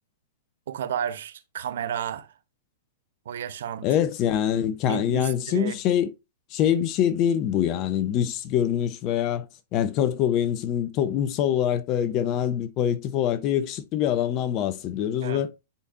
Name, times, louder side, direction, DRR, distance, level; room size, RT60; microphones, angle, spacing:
voice 1, 0.7-2.3 3.3-3.9 4.9-5.8 15.2-15.4, right 9 dB, 65° right, 0.8 m, -32 dB
voice 2, 3.8-6.1 6.5-9.5 9.7-15.5, left 10 dB, 35° left, 0.8 m, -24 dB
10.0 x 4.2 x 2.6 m
figure-of-eight pair, 105°, 0 cm